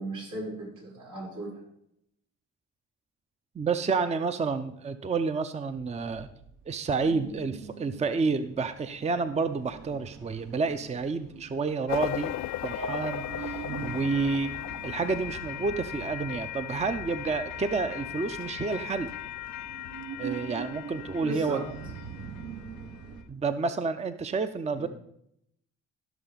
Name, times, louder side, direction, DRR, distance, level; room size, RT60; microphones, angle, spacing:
voice 1, 0.0-1.6 21.2-21.7 24.8-24.9, right 1 dB, 90° right, -5 dB, 4.9 m, -36 dB
voice 2, 3.6-6.3 6.7-12.3 12.6-14.5 14.8-19.1 20.2-21.6 23.3-24.9, right 4 dB, 20° right, 11 dB, 0.5 m, -29 dB
sound 1, 5.7-23.2, right 5 dB, 70° right, 1.2 m, -43 dB
sound 2, 11.9-23.0, left 14 dB, 65° left, 0.4 m, -38 dB
15.5 x 6.0 x 4.0 m, 0.74 s
cardioid pair, 90°, 30 cm